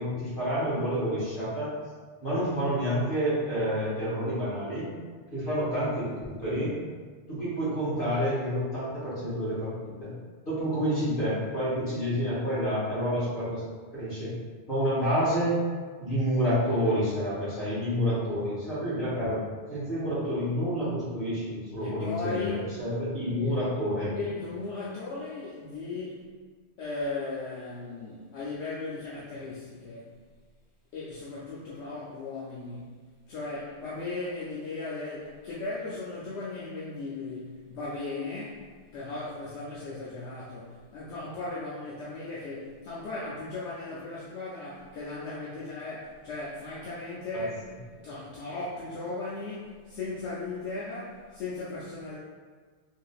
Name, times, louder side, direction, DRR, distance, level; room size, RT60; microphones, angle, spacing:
voice 1, 0.0-1.7 2.2-4.9 5.3-6.1 6.4-6.7 7.3-10.1 10.4-13.6 13.9-14.3 14.7-15.6 16.0-19.4 19.7-24.1, equal, 45° left, -11 dB, 1.7 m, -28 dB
voice 2, 21.8-22.7 23.4-23.5 24.1-26.3 26.8-30.1 30.9-47.7 48.0-52.2, left 3 dB, 75° left, -7 dB, 0.9 m, -37 dB
3.5 x 2.7 x 2.4 m, 1.5 s
omnidirectional pair, 1.2 m